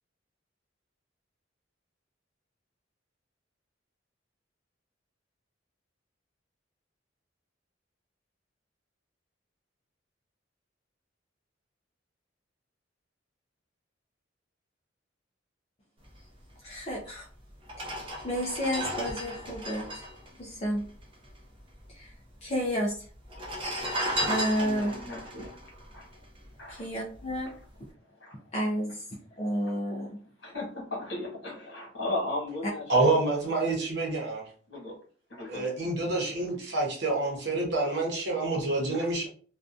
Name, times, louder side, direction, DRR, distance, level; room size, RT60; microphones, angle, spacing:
voice 1, 16.6-17.3 17.8-17.9 18.2-20.0 20.4-20.8 21.9-22.1 22.4-23.0 24.3-25.0 26.7-27.5 28.5-29.0 29.3-30.1, equal, 35° left, 0.4 m, -31 dB
sound 1, 17.0-17.1 17.6-21.3 21.6-21.7 21.8-22.5 23.2-26.7 27.2-27.4, equal, 30° right, 0.6 m, -34 dB
voice 2, 24.4-25.5 25.9-26.0 26.6-26.9 28.2-28.3 30.4-33.2 34.7-35.0 35.3-35.7 38.9-39.1, left 2 dB, 70° left, 1.3 m, -36 dB
voice 3, 32.9-34.4 35.5-39.3, right 2 dB, 60° right, 0.9 m, -27 dB
2.6 x 2.3 x 2.3 m
head